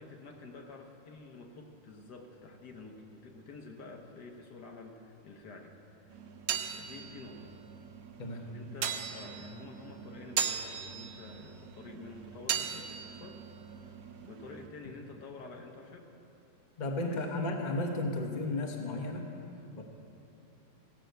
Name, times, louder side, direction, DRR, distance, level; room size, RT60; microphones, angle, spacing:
voice 1, 0.0-6.3 6.6-7.6 8.4-13.4 13.8-16.1 16.9-17.6, left 3 dB, 65° left, 2 dB, 1.6 m, -49 dB
sound 1, 6.1-14.7, right 8 dB, 65° right, 1.0 m, -39 dB
voice 2, 16.8-19.3 19.8-19.9, left 2 dB, 30° left, 2 dB, 1.0 m, -34 dB
16.0 x 5.9 x 7.9 m, 2.8 s
omnidirectional pair, 1.9 m